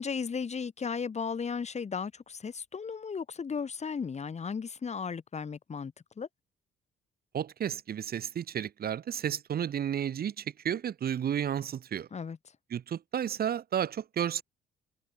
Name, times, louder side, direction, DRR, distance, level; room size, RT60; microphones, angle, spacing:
voice 1, 0.0-6.3 12.1-12.4, left 6 dB, 40° left, 4.2 m, -35 dB
voice 2, 7.3-12.1 12.7-14.4, right 9 dB, 60° right, 5.4 m, -32 dB
cardioid pair, 90°, 18 cm